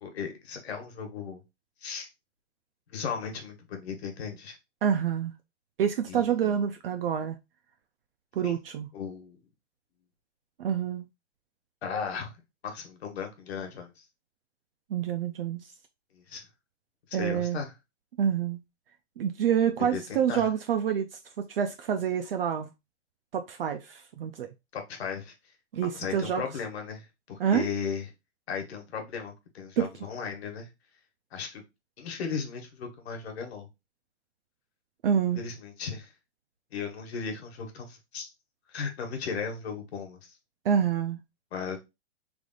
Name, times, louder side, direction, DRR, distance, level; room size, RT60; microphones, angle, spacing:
voice 1, 0.0-1.4 1.8-2.1 2.9-4.6 6.1-6.6 8.4-8.6 8.9-9.4 11.8-12.3 12.6-14.0 16.1-16.4 17.2-17.7 19.9-20.4 24.7-25.3 25.8-28.0 28.5-30.7 31.3-31.6 32.0-33.7 35.3-36.1 36.7-38.3 38.7-40.2 41.5-41.8, left 6 dB, 60° left, 1.2 m, -36 dB
voice 2, 4.8-5.3 5.8-7.4 8.3-8.9 10.6-11.0 14.9-15.7 17.1-17.6 18.2-18.6 19.2-21.1 21.4-22.7 23.3-24.5 25.7-26.4 27.4-27.7 29.8-29.9 35.0-35.4 40.6-41.2, right 8 dB, 55° right, 0.4 m, -27 dB
3.3 x 2.5 x 3.7 m
hypercardioid pair, 175°, 36 cm